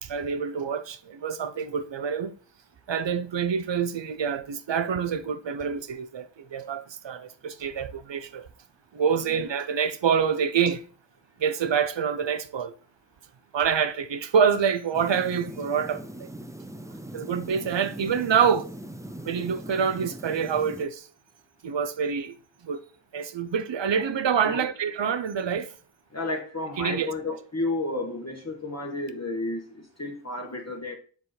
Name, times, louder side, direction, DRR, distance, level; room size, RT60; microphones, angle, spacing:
voice 1, 0.0-2.3 2.9-8.5 8.9-10.8 11.4-12.7 13.5-16.3 17.1-18.7 19.2-21.1 21.6-22.4 22.6-22.8 23.1-25.7 26.8-27.1, right 7 dB, 75° right, 0.7 m, -26 dB
sound 1, 14.9-20.8, right 1 dB, 5° right, 0.6 m, -41 dB
voice 2, 26.1-31.0, left 2 dB, 35° left, 1.3 m, -32 dB
7.1 x 3.8 x 4.0 m
wide cardioid pair, 45°, 44 cm